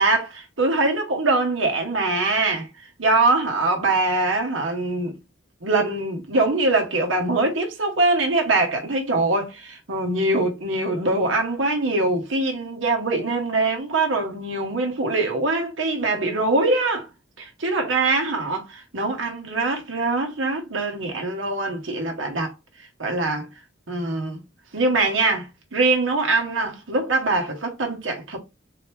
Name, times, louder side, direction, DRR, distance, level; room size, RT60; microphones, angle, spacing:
voice 1, 0.0-2.7 3.0-5.1 5.6-17.1 17.4-22.5 23.0-23.5 23.9-24.4 24.7-28.4, right 2 dB, 85° right, 1.0 m, -23 dB
3.9 x 3.2 x 3.1 m
head